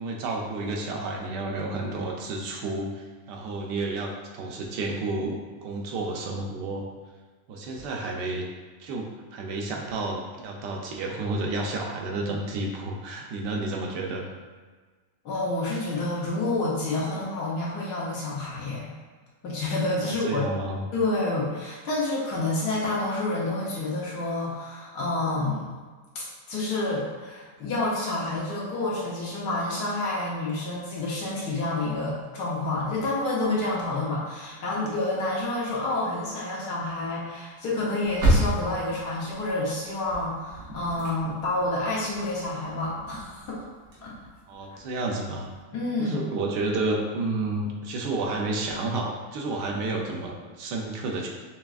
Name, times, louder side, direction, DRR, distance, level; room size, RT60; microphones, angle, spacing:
voice 1, 0.0-6.8 7.5-8.5 8.8-14.3 20.0-20.8 44.5-45.5 46.0-51.3, right 2 dB, 90° right, 0 dB, 1.2 m, -31 dB
voice 2, 15.2-18.9 19.4-20.4 20.9-25.7 26.1-43.7 44.0-44.1 45.7-46.2, left 2 dB, 75° left, -6 dB, 1.5 m, -29 dB
sound 1, 38.0-44.8 45.1-45.2 45.5-45.6, right 1 dB, 65° right, 1.5 m, -30 dB
5.8 x 2.3 x 2.4 m, 1.4 s
omnidirectional pair, 1.8 m